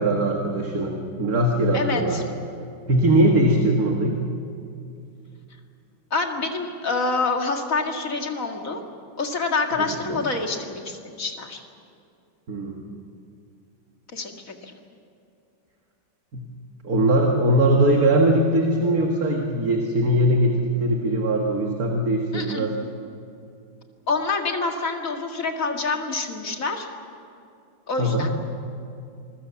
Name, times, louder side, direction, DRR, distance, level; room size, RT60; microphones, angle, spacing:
voice 1, 0.0-2.2 2.9-4.2 9.8-10.2 12.5-12.8 16.3-16.5 16.8-22.8 28.0-28.3, right 1 dB, 50° right, 1 dB, 2.2 m, -21 dB
voice 2, 1.7-2.2 6.1-8.8 9.2-11.6 14.1-14.7 22.3-22.7 24.1-26.9 27.9-28.3, left 3 dB, 40° left, 3 dB, 2.4 m, -27 dB
27.0 x 22.5 x 7.1 m, 2.5 s
omnidirectional pair, 2.2 m